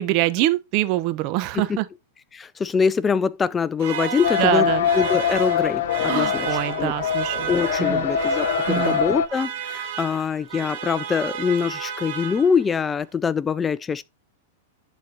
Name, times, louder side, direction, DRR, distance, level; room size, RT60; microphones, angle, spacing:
voice 1, 0.0-1.9 4.4-4.8 6.1-7.5 7.8-8.1 8.7-9.0, right 15 dB, 45° right, 0.9 m, -24 dB
voice 2, 2.3-6.9 7.3-14.0, left 6 dB, 20° left, 0.3 m, -24 dB
sound 1, 3.8-12.8, right 9 dB, 65° right, 1.6 m, -33 dB
Telephone, 3.8-5.7 6.6-8.5 9.8-10.0 11.5-11.7, right 9 dB, 80° right, 2.3 m, -38 dB
sound 2, 4.2-9.3, left 8 dB, 70° left, 0.7 m, -23 dB
11.5 x 4.2 x 2.8 m
hypercardioid pair, 120°, 0 cm